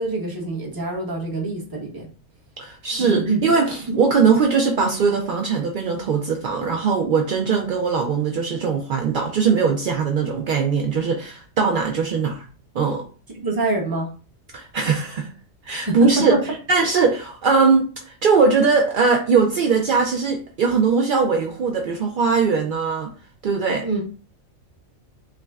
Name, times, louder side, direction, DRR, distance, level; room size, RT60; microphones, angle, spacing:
voice 1, 0.0-2.1 3.0-3.5 3.9-4.0 13.4-14.1 15.9-16.4 23.8-24.0, right 2 dB, 20° right, -1 dB, 0.7 m, -25 dB
voice 2, 2.6-12.4 12.7-13.0 14.5-15.3 15.6-16.3 16.7-23.1 23.4-23.9, right 5 dB, 70° right, 2 dB, 0.4 m, -20 dB
5.6 x 2.1 x 2.3 m, 0.38 s
omnidirectional pair, 1.4 m